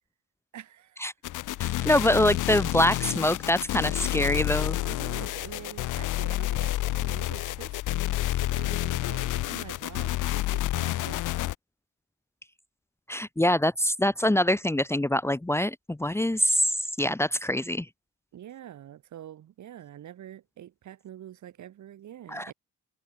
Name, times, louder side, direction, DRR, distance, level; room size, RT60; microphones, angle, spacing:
voice 1, 0.5-1.1 2.0-2.2 4.9-11.2 18.3-22.5, right 11 dB, 70° right, 7.5 m, -46 dB
sound 1, 1.2-11.5, left 16 dB, 90° left, 2.0 m, -29 dB
voice 2, 1.6-4.8 13.1-17.9 22.3-22.5, left 1 dB, 10° left, 1.3 m, -25 dB
cardioid pair, 90°, 30 cm